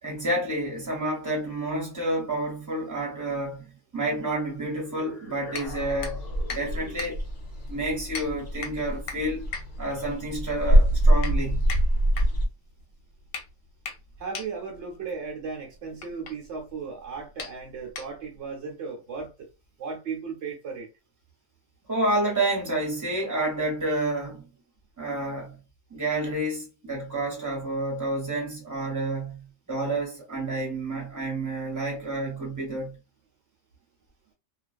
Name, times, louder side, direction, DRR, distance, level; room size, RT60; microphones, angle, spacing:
voice 1, 0.0-6.2 6.5-7.2 7.7-9.4 9.8-11.7 21.9-24.5 25.0-25.6 25.9-33.0, right 1 dB, 15° right, 1.2 m, -29 dB
sound 1, 4.8-7.1, left 1 dB, 40° left, 0.6 m, -44 dB
sound 2, 5.5-18.5, left 5 dB, 80° left, 1.0 m, -41 dB
sound 3, 5.7-12.5, right 1 dB, 65° left, 1.2 m, -25 dB
voice 2, 14.2-19.5 19.8-20.9, right 5 dB, 70° right, 1.0 m, -36 dB
2.4 x 2.3 x 2.3 m
omnidirectional pair, 1.3 m